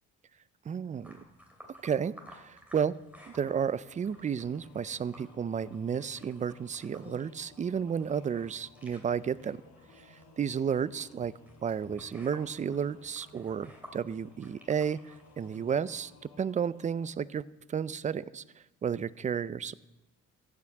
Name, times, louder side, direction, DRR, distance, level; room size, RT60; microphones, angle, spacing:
voice 1, 0.7-1.2 1.8-3.0 3.3-9.6 10.4-11.3 11.6-16.1 16.4-18.4 18.8-19.9, right 7 dB, 25° right, 17 dB, 0.3 m, -32 dB
sound 1, 1.0-16.0, equal, 5° right, 2.7 m, -56 dB
Singing / Musical instrument, 3.2-17.1, left 4 dB, 85° left, 2.3 m, -59 dB
15.5 x 6.0 x 7.8 m, 0.99 s
cardioid pair, 120°, 32 cm